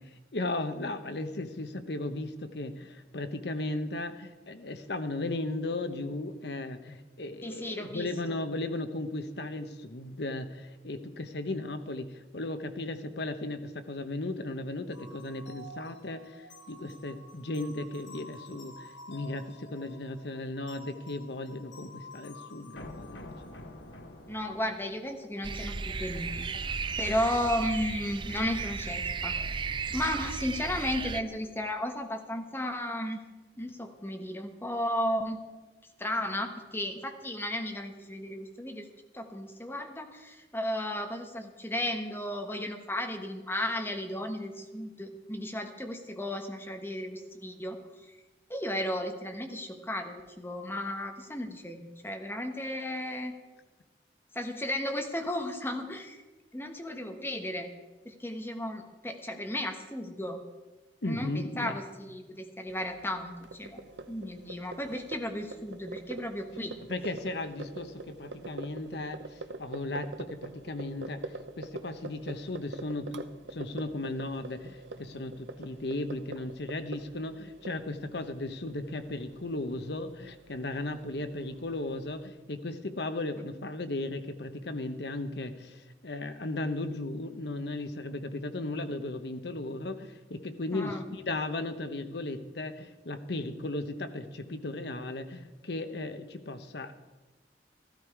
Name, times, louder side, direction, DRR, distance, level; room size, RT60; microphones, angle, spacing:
voice 1, 0.3-23.3 61.0-61.8 66.9-96.9, left 2 dB, 65° left, 9 dB, 0.9 m, -36 dB
voice 2, 7.4-8.4 24.3-29.7 29.9-33.2 33.6-35.4 36.0-38.9 39.1-47.8 48.5-53.4 54.3-56.2 56.5-57.7 58.0-60.4 61.0-63.8 64.1-66.8 90.7-91.0, left 1 dB, 10° left, 4 dB, 1.2 m, -34 dB
sound 1, 14.9-26.7, left 1 dB, 80° left, 1.3 m, -49 dB
sound 2, 25.4-31.2, right 5 dB, 25° right, 0.4 m, -35 dB
sound 3, 62.7-82.3, right 3 dB, 80° right, 0.7 m, -45 dB
14.5 x 13.0 x 4.8 m, 1.2 s
head